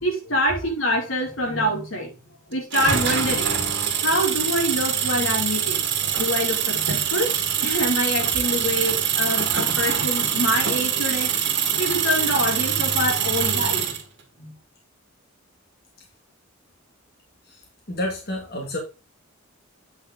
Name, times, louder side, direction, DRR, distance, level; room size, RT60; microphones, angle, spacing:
voice 1, 0.0-2.1 2.5-3.6 3.9-5.8 6.2-11.3 11.8-13.8 14.4-14.6, equal, 75° left, 3.0 m, -25 dB
sound 1, 2.7-14.0, right 8 dB, 55° right, 2.0 m, -24 dB
voice 2, 17.5-18.8, left 1 dB, 50° left, 2.4 m, -30 dB
9.0 x 5.6 x 3.8 m
head